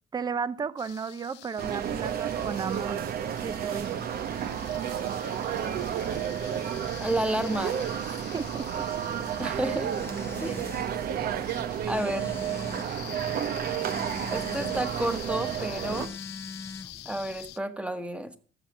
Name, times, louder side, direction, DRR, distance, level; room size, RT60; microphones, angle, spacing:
voice 1, 0.1-3.0 3.4-3.9 8.3-8.8, right 5 dB, 25° right, 0.6 m, -34 dB
sound 1, 0.8-17.6, left 16 dB, 85° left, 0.8 m, -46 dB
sound 2, 1.6-16.1, right 9 dB, 60° right, 1.1 m, -31 dB
voice 2, 7.0-7.8 9.4-9.9 10.4-10.6 11.9-12.4 14.3-16.1 17.0-18.3, right 1 dB, 5° right, 1.4 m, -30 dB
Telephone, 9.0-17.5, left 4 dB, 15° left, 0.7 m, -44 dB
13.5 x 7.5 x 7.4 m
cardioid pair, 110°, 17 cm